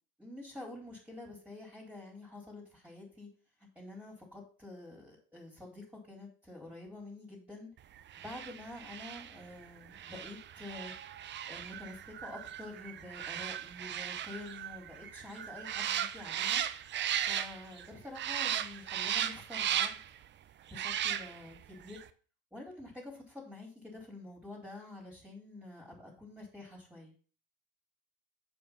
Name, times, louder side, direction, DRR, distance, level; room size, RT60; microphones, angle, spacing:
voice 1, 0.2-3.3 3.8-7.7 8.2-10.9 11.5-16.6 17.1-20.0 20.7-22.0 22.5-27.1, left 2 dB, 5° right, -3 dB, 4.4 m, -48 dB
sound 1, 8.1-17.9 18.1-20.2 20.7-21.6 21.9-22.0, right 10 dB, 40° right, 0.8 m, -36 dB
7.1 x 5.8 x 7.4 m, 0.40 s
hypercardioid pair, 75°, 29 cm